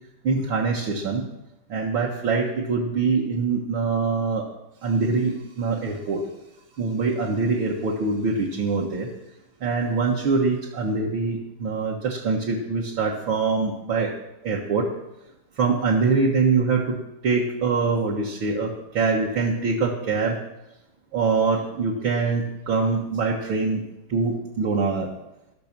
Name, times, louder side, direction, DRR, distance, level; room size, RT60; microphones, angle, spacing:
voice 1, 0.2-1.3 1.7-4.5 4.8-6.2 6.8-9.1 9.6-14.1 14.4-14.9 15.6-20.4 21.1-23.8 24.1-25.1, right 4 dB, 50° right, -2 dB, 1.6 m, -24 dB
14.0 x 13.0 x 6.0 m, 0.93 s
omnidirectional pair, 3.7 m